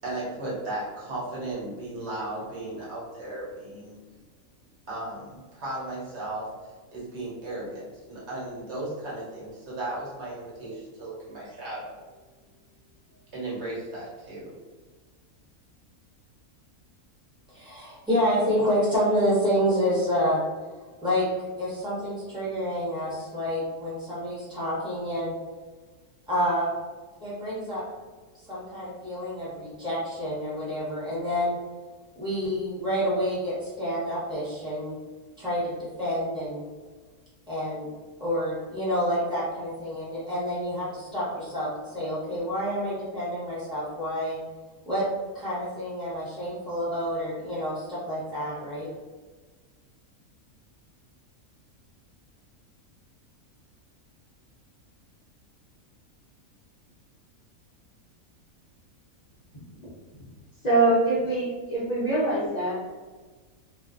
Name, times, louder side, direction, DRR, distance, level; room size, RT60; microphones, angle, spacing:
voice 1, 0.0-4.0 4.9-12.0 13.3-14.5, right 2 dB, 55° right, -7 dB, 1.0 m, -35 dB
voice 2, 17.5-20.4 21.0-21.3 21.6-25.3 26.3-26.7 27.2-27.8 28.5-31.6 32.2-34.9 35.4-35.7 36.0-36.6 37.5-37.9 38.2-44.4 44.9-45.0 45.3-48.9, equal, 5° right, -8 dB, 0.7 m, -28 dB
voice 3, 60.6-62.9, right 2 dB, 55° left, -8 dB, 0.4 m, -24 dB
2.5 x 2.2 x 2.4 m, 1.4 s
omnidirectional pair, 1.5 m